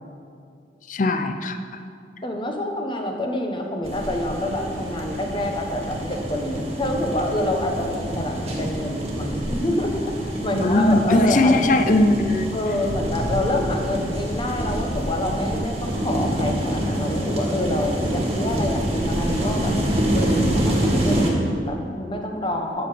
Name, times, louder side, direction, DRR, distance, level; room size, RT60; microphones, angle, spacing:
voice 1, 0.9-1.6 10.6-12.5, left 2 dB, 45° left, 7 dB, 0.6 m, -19 dB
voice 2, 2.2-11.5 12.5-19.9 20.1-22.9, left 1 dB, 25° left, 2 dB, 1.1 m, -27 dB
sound 1, 3.8-21.3, right 1 dB, 35° right, 1.7 m, -26 dB
13.5 x 6.9 x 5.0 m, 2.4 s
head